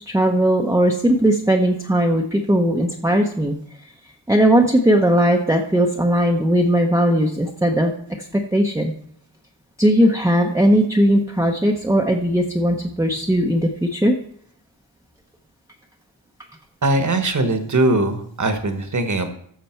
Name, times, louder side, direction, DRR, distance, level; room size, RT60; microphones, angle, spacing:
voice 1, 0.1-3.6 4.3-7.9 8.3-8.9 9.8-14.1, equal, 5° right, 0 dB, 0.7 m, -18 dB
voice 2, 16.8-19.3, right 2 dB, 40° right, 8 dB, 1.2 m, -20 dB
13.5 x 6.7 x 4.4 m, 0.65 s
wide cardioid pair, 125°, 47 cm